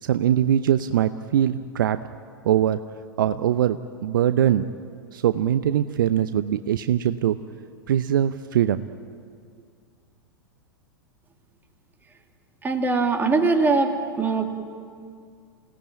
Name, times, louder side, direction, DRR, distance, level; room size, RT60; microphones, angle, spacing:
voice 1, 0.0-2.0 2.4-2.8 3.2-4.7 5.1-7.4 7.9-8.9, right 10 dB, 60° right, 11 dB, 0.7 m, -22 dB
voice 2, 12.6-13.9 14.2-14.4, right 3 dB, 15° right, 3 dB, 2.7 m, -21 dB
28.0 x 18.0 x 9.0 m, 2.2 s
figure-of-eight pair, 95°, 12 cm